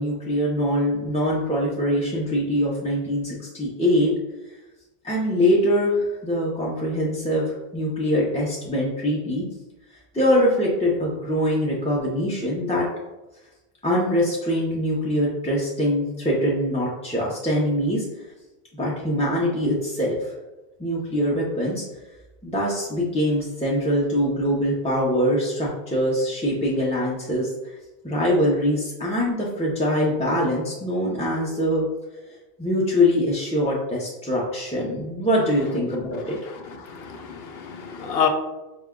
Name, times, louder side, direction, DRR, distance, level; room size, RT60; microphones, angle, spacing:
voice 1, 0.0-4.1 5.0-9.4 10.1-12.9 13.8-18.1 18.7-20.4 20.8-21.8 22.4-27.7 28.0-31.9 32.6-36.4, equal, 10° left, -5 dB, 0.4 m, -23 dB
voice 2, 36.1-38.3, left 7 dB, 75° left, 4 dB, 0.8 m, -29 dB
4.8 x 2.2 x 3.6 m, 1.0 s
omnidirectional pair, 1.0 m